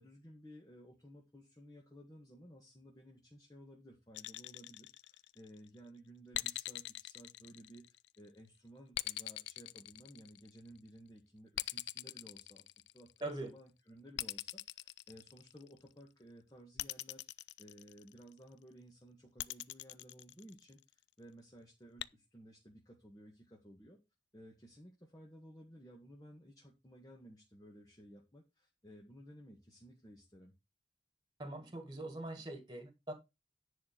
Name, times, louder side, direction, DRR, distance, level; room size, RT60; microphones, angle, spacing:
voice 1, 0.0-12.6 12.9-24.0 24.3-30.5, equal, 20° left, 1.7 m, -57 dB
sound 1, 4.1-5.6 6.3-8.2 8.9-10.7 11.6-13.3 14.2-15.8 16.8-18.3 19.4-20.9 22.0-22.1, left 15 dB, 75° left, 0.4 m, -42 dB
voice 2, 13.2-13.5 31.4-33.1, right 2 dB, 25° right, 1.9 m, -42 dB
10.5 x 4.5 x 6.6 m
head